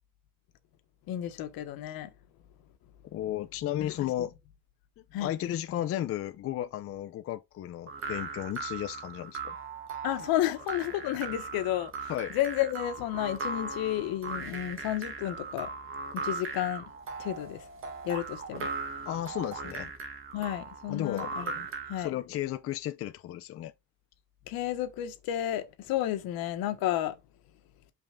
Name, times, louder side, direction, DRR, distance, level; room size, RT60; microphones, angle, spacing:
voice 1, 1.1-2.1 3.8-3.9 5.1-5.4 10.0-15.7 16.1-16.8 17.2-17.6 18.0-18.7 20.3-21.5 21.9-22.1 24.5-27.1, left 13 dB, 85° left, 1.3 m, -32 dB
voice 2, 3.0-4.3 5.0-9.5 12.1-12.3 19.1-19.9 20.9-21.3 22.0-23.7, left 12 dB, 40° left, 0.5 m, -34 dB
sound 1, 7.9-22.1, right 4 dB, 35° right, 1.4 m, -38 dB
5.5 x 3.7 x 5.8 m
cardioid pair, 170°, 35 cm